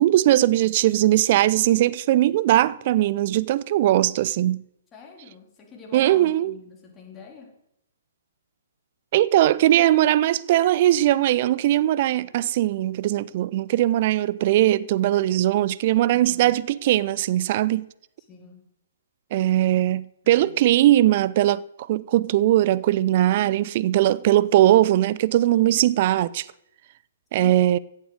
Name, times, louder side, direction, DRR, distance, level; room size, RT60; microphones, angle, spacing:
voice 1, 0.0-4.6 5.9-6.5 9.1-17.9 19.3-26.5 27.3-27.8, right 14 dB, 35° right, 0.5 m, -20 dB
voice 2, 4.9-7.5 16.1-16.5 18.3-18.7 20.4-20.6 27.4-27.6, left 5 dB, 15° left, 3.2 m, -45 dB
15.0 x 8.2 x 7.9 m
figure-of-eight pair, 125°, 0 cm